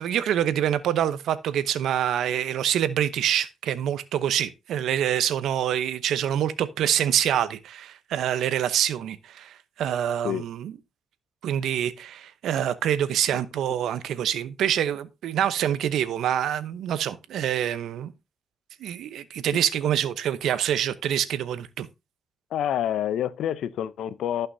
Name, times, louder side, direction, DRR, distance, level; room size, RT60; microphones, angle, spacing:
voice 1, 0.0-10.7 11.4-18.1 18.8-21.9, right 10 dB, 75° right, 0.8 m, -26 dB
voice 2, 22.5-24.5, left 10 dB, 75° left, 0.7 m, -27 dB
15.0 x 5.7 x 2.7 m
cardioid pair, 90°, 0 cm